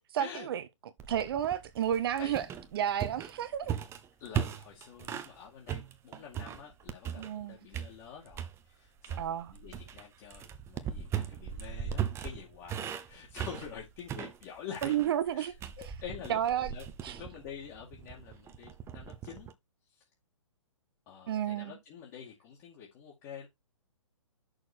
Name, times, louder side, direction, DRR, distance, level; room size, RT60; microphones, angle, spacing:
voice 1, 0.1-0.6 1.1-2.5 2.7-3.8 7.2-7.6 9.2-9.5 14.8-15.5 15.8-15.9 16.3-16.7 17.0-17.2 21.3-21.7, right 10 dB, 50° right, 0.7 m, -31 dB
sound 1, 1.0-5.4 5.7-7.4 7.7-8.6 9.0-19.5, right 9 dB, 15° right, 0.8 m, -39 dB
voice 2, 4.2-15.0 15.3-16.8 17.1-19.5 19.9-20.0 21.1-23.5, left 8 dB, 35° left, 2.3 m, -47 dB
6.5 x 6.0 x 4.5 m
hypercardioid pair, 130°, 16 cm